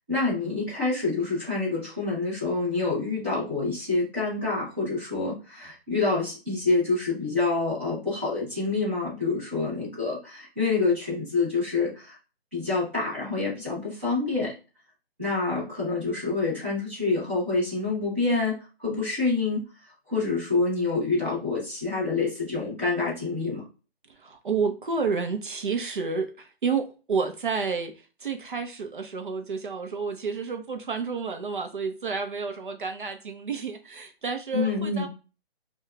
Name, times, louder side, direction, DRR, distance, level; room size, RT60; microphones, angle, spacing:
voice 1, 0.1-12.2 12.5-14.5 15.2-18.5 18.8-19.6 20.1-23.6 34.5-35.1, left 3 dB, 10° right, 0.8 m, -27 dB
voice 2, 24.2-27.9 28.2-35.1, right 5 dB, 55° right, 0.6 m, -30 dB
4.8 x 2.3 x 2.2 m
hypercardioid pair, 175°, 31 cm